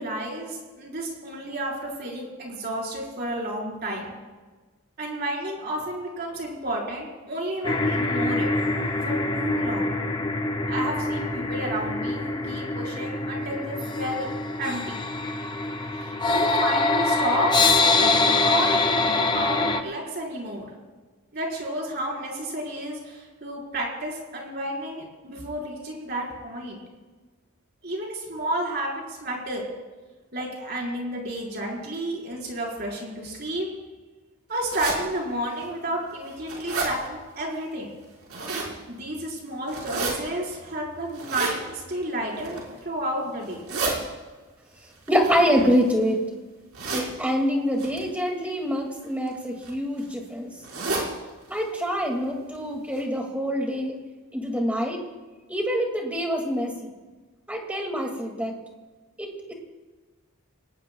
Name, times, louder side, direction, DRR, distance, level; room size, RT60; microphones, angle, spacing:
voice 1, 0.0-4.1 5.0-8.5 9.0-9.9 10.7-14.3 14.6-15.0 15.9-17.5 17.9-20.7 21.3-26.8 27.8-29.6 30.3-33.7 34.5-37.9 38.9-43.6, right 1 dB, 45° right, -2 dB, 4.6 m, -31 dB
sound 1, 7.6-19.8, left 3 dB, 20° left, 0.6 m, -24 dB
sound 2, 34.7-35.0 35.6-35.7 36.1-36.9 38.0-38.7 39.7-40.1 41.1-41.6 42.3-42.7 43.4-43.9 45.1-46.1 46.7-47.1 47.8-48.0 49.0-49.3 49.6-49.7 50.0-50.1 50.6-51.1 51.5-51.6 51.9-52.0 52.5-52.6 52.9-53.0, right 3 dB, 75° right, 5.0 m, -30 dB
voice 2, 45.1-46.2 46.9-50.5 51.5-54.0 54.3-55.0 55.5-56.9 57.5-58.6 59.2-59.5, equal, 5° right, 1 dB, 2.2 m, -25 dB
27.0 x 19.0 x 2.3 m, 1.3 s
head